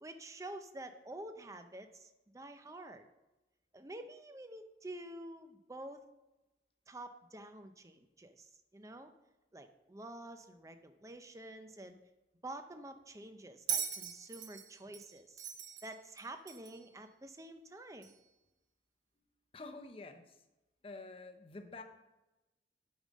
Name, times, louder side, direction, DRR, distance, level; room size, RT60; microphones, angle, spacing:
voice 1, 0.0-3.0 3.7-6.0 6.9-9.1 9.5-12.0 12.4-15.4 15.8-18.1, right 1 dB, 20° right, 8 dB, 0.6 m, -49 dB
Bell, 13.7-16.9 18.0-18.1, right 8 dB, 90° right, 1.0 m, -40 dB
voice 2, 19.5-20.3 20.8-21.8, left 3 dB, 30° left, 7 dB, 0.8 m, -48 dB
8.7 x 5.5 x 6.3 m, 1.0 s
head